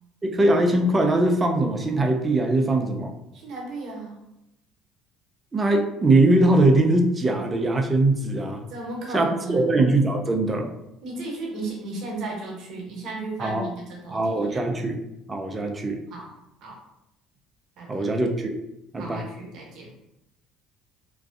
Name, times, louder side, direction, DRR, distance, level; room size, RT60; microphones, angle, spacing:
voice 1, 0.2-3.1 5.5-8.6 9.1-10.7 13.4-13.7 14.1-15.0 15.3-16.0 17.9-18.6 18.9-19.2, right 2 dB, 25° right, 3 dB, 0.4 m, -21 dB
voice 2, 3.3-4.2 8.7-9.8 11.0-14.6 16.1-16.3 16.6-16.8 17.8-18.0 19.0-19.9, right 2 dB, 60° right, -1 dB, 0.8 m, -35 dB
2.5 x 2.2 x 2.4 m, 0.87 s
supercardioid pair, 85°, 0 cm